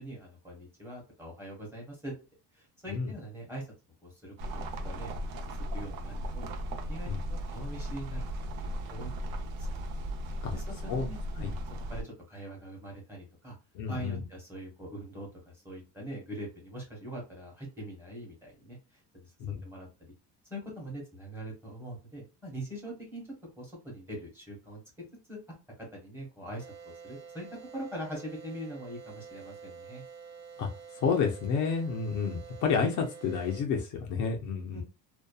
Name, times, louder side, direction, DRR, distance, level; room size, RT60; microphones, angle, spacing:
voice 1, 0.0-2.1 2.5-3.7 4.0-5.1 5.7-8.2 8.6-9.7 10.5-11.5 11.9-13.5 13.9-19.3 19.6-20.1 20.5-24.8 25.3-25.4 25.8-26.7 27.0-30.0 34.7-34.8, right 1 dB, 5° right, -2 dB, 1.1 m, -43 dB
sound 1, 4.4-12.0, equal, 70° right, 0.6 m, -36 dB
voice 2, 13.7-14.2 19.4-19.6 30.6-30.7 30.9-34.8, left 5 dB, 55° left, 2 dB, 0.6 m, -30 dB
sound 2, 26.6-33.6, right 6 dB, 45° right, 0.9 m, -48 dB
2.7 x 2.2 x 2.2 m, 0.30 s
cardioid pair, 165°, 38 cm